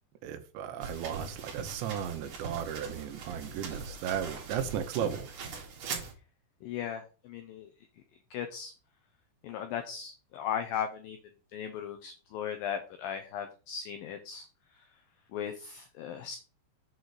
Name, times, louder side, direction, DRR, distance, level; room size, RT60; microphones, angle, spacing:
voice 1, 0.2-5.3, right 9 dB, 80° right, 3.2 m, -35 dB
sound 1, 0.8-6.1, right 5 dB, 55° right, 3.2 m, -41 dB
voice 2, 6.6-7.7 8.3-8.7 9.4-11.2 11.5-14.5 15.3-16.4, left 8 dB, 80° left, 2.0 m, -37 dB
7.7 x 4.0 x 6.4 m
omnidirectional pair, 5.1 m